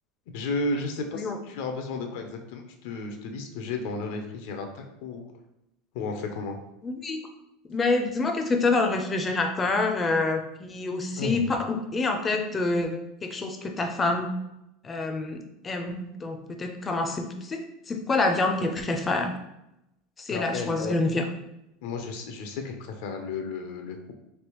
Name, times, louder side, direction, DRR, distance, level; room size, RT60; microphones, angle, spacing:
voice 1, 0.3-5.3 5.9-6.6 11.2-11.4 20.3-20.9 21.8-24.1, left 3 dB, 70° left, 4 dB, 0.5 m, -33 dB
voice 2, 6.8-7.2 7.6-14.3 14.8-19.3 20.2-21.2, left 3 dB, 20° left, 5 dB, 0.5 m, -27 dB
3.3 x 2.8 x 3.0 m, 0.87 s
supercardioid pair, 135°, 0 cm